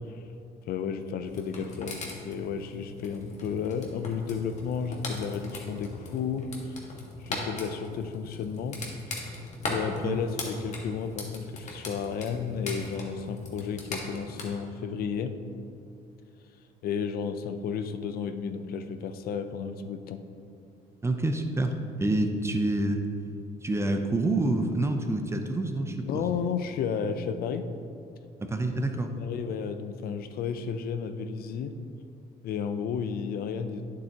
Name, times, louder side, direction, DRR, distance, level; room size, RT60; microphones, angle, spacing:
voice 1, 0.7-6.5 7.2-8.8 9.7-15.4 16.8-20.2 26.0-27.7 29.2-31.8 32.4-33.8, left 6 dB, 65° left, 9 dB, 0.6 m, -32 dB
sound 1, 1.2-14.5, left 2 dB, 45° left, 1.5 m, -39 dB
voice 2, 21.0-21.7 22.0-23.0 23.6-26.3 28.5-29.1, right 2 dB, 15° right, 5 dB, 0.6 m, -27 dB
9.3 x 7.6 x 2.9 m, 2.5 s
cardioid pair, 110°, 17 cm